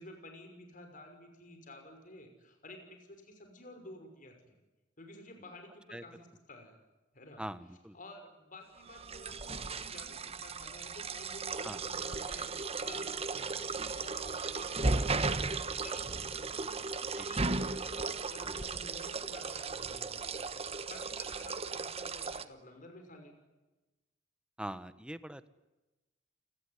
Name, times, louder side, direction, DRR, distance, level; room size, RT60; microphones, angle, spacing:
voice 1, 0.0-4.5 5.0-6.8 7.1-7.4 7.9-16.8 17.3-23.3, left 1 dB, 45° left, 5 dB, 6.0 m, -52 dB
voice 2, 7.4-8.0 11.6-11.8 17.1-17.3 18.4-18.6 24.6-25.5, right 1 dB, 5° right, 12 dB, 1.2 m, -43 dB
sound 1, 8.9-22.4, right 3 dB, 30° right, 1.2 m, -36 dB
29.5 x 20.0 x 9.8 m, 1.1 s
head